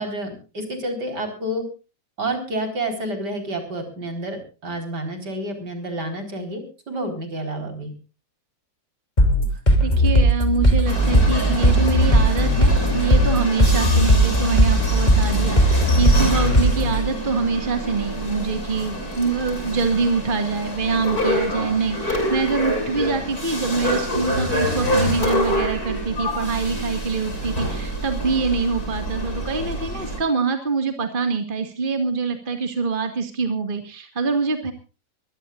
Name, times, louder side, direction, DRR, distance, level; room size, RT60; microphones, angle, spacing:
voice 1, 0.0-1.6 2.2-6.6 6.9-7.9, right 1 dB, 60° right, 6 dB, 5.1 m, -29 dB
sound 1, 9.2-17.0, equal, 20° left, 3.4 m, -17 dB
voice 2, 9.8-34.7, right 4 dB, 25° right, 6 dB, 2.1 m, -25 dB
sound 2, 10.9-30.2, equal, 50° left, 8.0 m, -26 dB
23.5 x 17.0 x 2.5 m, 0.35 s
omnidirectional pair, 2.0 m